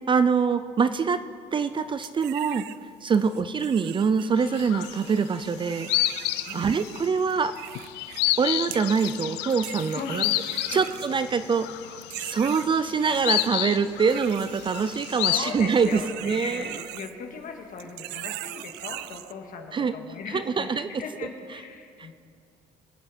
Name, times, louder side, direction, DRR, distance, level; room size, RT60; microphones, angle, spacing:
voice 1, 0.1-1.2 1.5-2.7 3.0-5.9 6.5-7.6 8.4-10.2 10.7-16.6 19.7-19.9 20.3-20.9, right 5 dB, 30° right, 12 dB, 0.5 m, -24 dB
sound 1, 2.0-2.8 3.1-8.4 8.7-9.2 9.5-11.6 12.0-13.5 14.1-17.5 17.8-19.3, right 17 dB, 90° right, 0.4 m, -41 dB
sound 2, 4.4-5.3 5.5-15.5, left 16 dB, 90° left, 0.5 m, -30 dB
voice 2, 6.5-6.8 9.6-10.4 10.7-10.8 11.3-11.5 15.2-22.1, left 5 dB, 55° left, 3 dB, 2.0 m, -39 dB
24.0 x 8.5 x 4.3 m, 2.4 s
cardioid pair, 110°, 17 cm